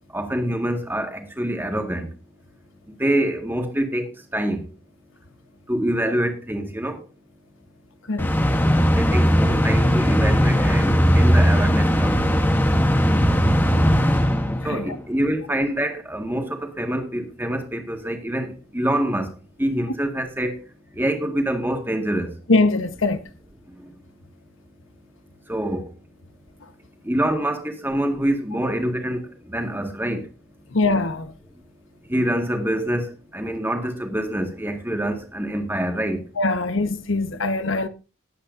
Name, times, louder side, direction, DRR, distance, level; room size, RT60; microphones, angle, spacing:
voice 1, 0.1-2.1 3.0-4.7 5.7-7.0 8.9-12.2 14.6-19.3 19.6-20.6 21.0-22.3 25.5-25.8 27.0-29.2 29.5-30.2 32.1-33.0 33.3-36.2, right 1 dB, 10° right, 1.8 m, -25 dB
sound 1, 8.2-15.0, equal, 10° left, 1.1 m, -18 dB
voice 2, 14.6-15.0 22.5-23.2 30.7-31.3 36.4-37.9, left 2 dB, 60° left, 1.2 m, -22 dB
19.0 x 8.5 x 2.7 m
head